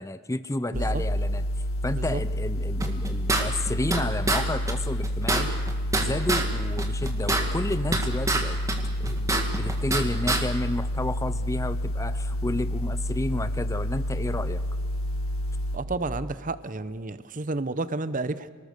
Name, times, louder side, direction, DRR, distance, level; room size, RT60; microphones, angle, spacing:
voice 1, 0.0-1.4 1.8-5.5 6.0-8.6 9.0-14.6, left 1 dB, 15° left, 13 dB, 0.6 m, -31 dB
sound 1, 0.7-15.8, equal, 85° left, 1.7 m, -29 dB
voice 2, 0.7-1.0 1.9-2.2 15.7-18.5, right 3 dB, 40° right, 14 dB, 0.8 m, -31 dB
sound 2, 2.8-4.0 4.3-4.4 4.7-4.8 5.0-6.5 6.8-8.4 8.7-10.0 10.3-10.4, right 2 dB, 15° right, 2.1 m, -25 dB
27.5 x 20.0 x 6.7 m, 1.5 s
head